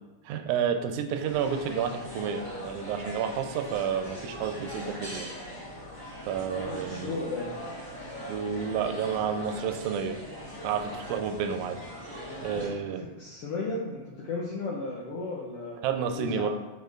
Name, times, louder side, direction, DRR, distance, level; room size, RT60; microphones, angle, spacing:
voice 1, 0.3-5.3 6.3-7.2 8.3-10.2 10.6-11.8 12.4-13.0 15.8-16.5, right 7 dB, 85° right, 7 dB, 1.9 m, -30 dB
sound 1, 1.2-12.7, equal, 25° left, 0.4 m, -41 dB
voice 2, 6.5-7.5 12.5-16.5, left 3 dB, 75° left, -4 dB, 1.3 m, -35 dB
5.5 x 4.6 x 3.8 m, 1.1 s
omnidirectional pair, 3.5 m